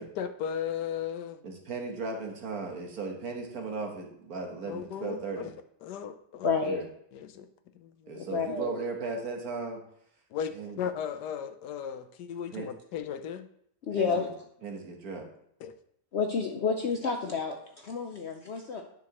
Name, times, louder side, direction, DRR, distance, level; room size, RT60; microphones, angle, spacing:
voice 1, 0.0-1.4 4.7-5.5 5.8-6.5 7.1-7.5 7.7-8.2 10.3-13.5 15.6-15.7, left 8 dB, 80° left, 9 dB, 1.3 m, -36 dB
voice 2, 1.4-5.5 6.6-6.8 8.1-9.8 10.5-10.8 12.5-12.7 13.9-14.3 14.6-15.3, right 4 dB, 60° right, 2 dB, 1.7 m, -36 dB
voice 3, 6.4-6.8 8.1-8.8 13.9-14.3 16.1-18.8, left 5 dB, 60° left, 3 dB, 0.7 m, -30 dB
9.4 x 6.2 x 3.0 m, 0.71 s
omnidirectional pair, 1.8 m